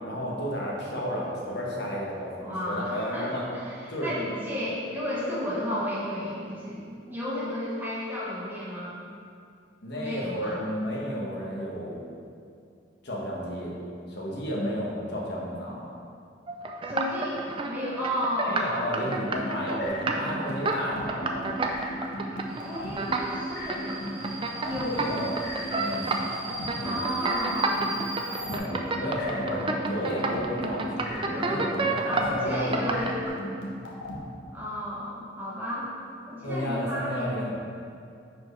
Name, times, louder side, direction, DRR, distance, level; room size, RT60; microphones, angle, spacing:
voice 1, 0.0-3.5 3.9-4.1 9.8-12.0 13.0-13.7 14.1-15.8 18.4-21.7 24.9-25.3 25.7-26.0 26.8-27.0 28.4-33.0 36.4-37.6, equal, 60° left, -4 dB, 1.4 m, -32 dB
voice 2, 2.4-9.0 9.9-10.6 16.9-19.1 22.6-23.8 24.6-25.0 26.8-27.9 32.1-33.1 34.5-35.9 36.3-37.4, equal, 10° right, -8 dB, 1.4 m, -33 dB
sound 1, 16.5-17.7 18.0-33.1, right 3 dB, 30° right, 0.5 m, -30 dB
sound 2, 19.3-34.2, left 1 dB, 85° left, 1.2 m, -36 dB
Subway metro underground, 22.5-28.6, right 2 dB, 60° right, 1.6 m, -40 dB
10.0 x 4.6 x 3.2 m, 2.4 s
head